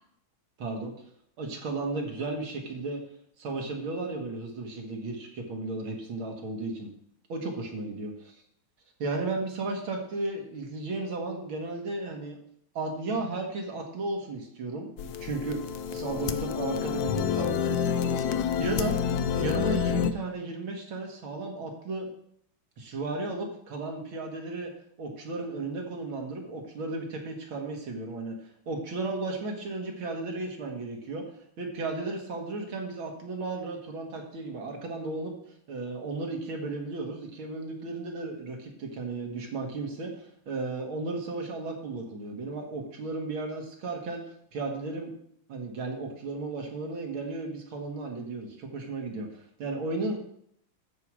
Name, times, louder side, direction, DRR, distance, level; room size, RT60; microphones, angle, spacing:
voice 1, 0.6-0.9 1.4-3.0 3.4-6.9 7.3-8.1 9.0-12.4 12.7-15.6 15.9-19.0 19.4-22.1 22.8-24.7 25.0-28.4 28.7-31.2 31.6-44.2 44.5-45.1 45.5-49.3 49.6-50.2, right 3 dB, 70° right, 2 dB, 2.6 m, -34 dB
sound 1, 15.0-20.1, left 8 dB, 65° left, 0.9 m, -28 dB
14.0 x 4.8 x 6.2 m, 0.69 s
omnidirectional pair, 2.3 m